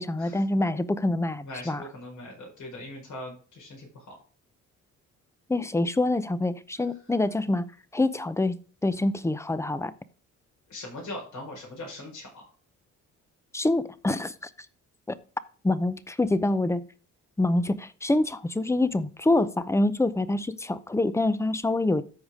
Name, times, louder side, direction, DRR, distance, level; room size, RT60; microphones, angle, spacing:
voice 1, 0.0-1.8 5.5-7.7 7.9-8.6 8.8-9.9 13.5-14.5 15.1-15.2 15.6-16.8 17.4-22.0, left 2 dB, 10° left, 0.7 m, -26 dB
voice 2, 1.4-4.1 10.7-12.4, left 1 dB, 70° left, 4.8 m, -40 dB
13.5 x 4.9 x 3.7 m
cardioid pair, 90°, 30 cm